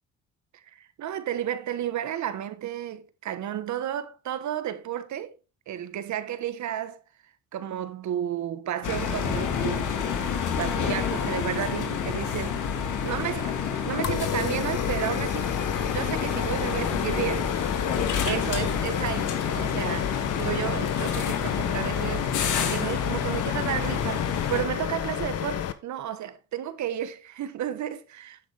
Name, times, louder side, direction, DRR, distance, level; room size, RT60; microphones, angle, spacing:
voice 1, 0.5-5.3 5.7-7.0 7.5-9.9 10.6-13.6 13.8-15.5 15.9-17.7 18.2-22.3 22.6-28.4, right 11 dB, 70° right, 1.3 m, -32 dB
sound 1, 8.8-24.6, left 7 dB, 80° left, 2.1 m, -29 dB
sound 2, 14.0-25.7, left 9 dB, 55° left, 1.1 m, -31 dB
10.5 x 7.5 x 3.5 m
cardioid pair, 90°, 30 cm